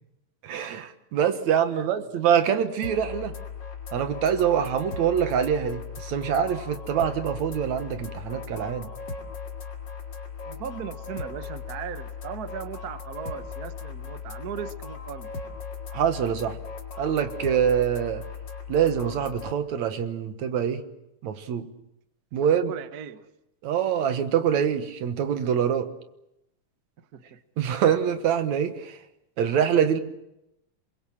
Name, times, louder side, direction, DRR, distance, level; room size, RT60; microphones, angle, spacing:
voice 1, 0.4-3.3 3.9-8.9 15.9-16.6 17.0-18.2 18.7-20.8 21.2-21.7 22.3-22.7 23.6-25.9 27.6-29.0 29.4-30.0, right 8 dB, 70° right, 9 dB, 2.6 m, -25 dB
voice 2, 1.7-2.1 10.4-15.3 22.4-23.3 27.0-27.4, right 8 dB, 85° right, 11 dB, 0.8 m, -38 dB
sound 1, 2.8-19.5, left 5 dB, 40° left, 2.4 m, -38 dB
27.5 x 22.5 x 7.4 m, 0.86 s
omnidirectional pair, 3.6 m